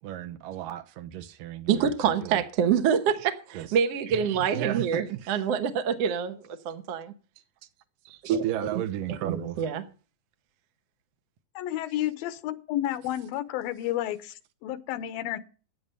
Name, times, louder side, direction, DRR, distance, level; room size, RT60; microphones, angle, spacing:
voice 1, 0.0-1.9 2.2-2.4 3.5-3.7 4.5-5.4 8.2-9.6, right 12 dB, 80° right, 2.6 m, -34 dB
voice 2, 1.7-6.4 6.6-7.1 8.1-8.4 8.7-8.8 9.1-9.8, right 7 dB, 65° right, 1.7 m, -26 dB
voice 3, 11.6-15.4, left 13 dB, 90° left, 2.8 m, -31 dB
14.5 x 9.8 x 5.4 m
omnidirectional pair, 4.1 m